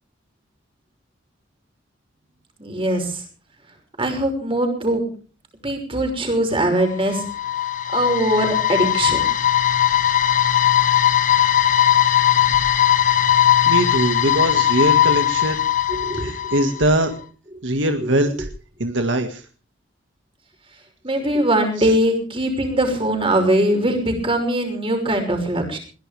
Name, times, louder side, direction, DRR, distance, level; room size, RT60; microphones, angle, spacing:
voice 1, 2.6-3.2 4.0-5.0 5.6-7.3 7.9-9.3 15.9-16.3 18.0-18.1 21.0-25.8, right 1 dB, 30° right, 4 dB, 5.9 m, -21 dB
sound 1, 6.8-16.9, left 11 dB, 45° left, 1.2 m, -19 dB
voice 2, 13.7-15.6 16.2-17.1 17.6-18.5 18.8-19.4 21.8-21.9, right 1 dB, 75° right, 6 dB, 1.9 m, -21 dB
22.0 x 17.0 x 3.5 m, 0.39 s
head